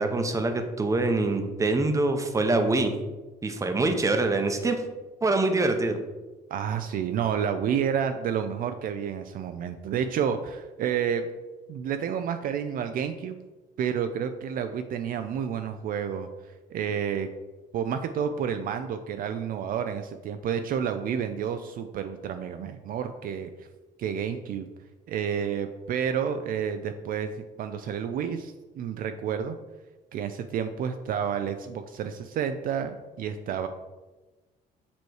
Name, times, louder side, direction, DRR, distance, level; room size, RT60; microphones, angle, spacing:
voice 1, 0.0-3.0 3.4-4.8 5.2-6.0, right 2 dB, 20° right, 6 dB, 0.7 m, -24 dB
voice 2, 6.5-11.3 11.7-13.4 13.8-16.3 16.7-17.3 17.7-23.7 24.0-24.7 25.1-27.3 27.6-29.6 30.1-33.7, right 8 dB, 55° right, 8 dB, 0.4 m, -30 dB
6.9 x 3.1 x 4.7 m, 1.2 s
cardioid pair, 110°, 17 cm